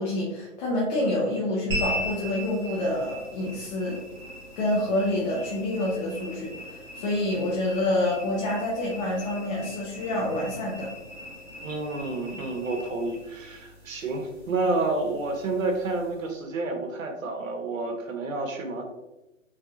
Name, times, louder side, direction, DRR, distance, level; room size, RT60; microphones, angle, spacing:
voice 1, 0.0-4.0 4.6-10.9, left 1 dB, 35° left, -5 dB, 0.6 m, -27 dB
sound 1, 1.7-16.3, left 1 dB, 10° right, 0.4 m, -39 dB
voice 2, 11.6-18.8, right 3 dB, 85° right, 3 dB, 0.8 m, -29 dB
3.1 x 2.6 x 2.3 m, 0.98 s
hypercardioid pair, 135°, 39 cm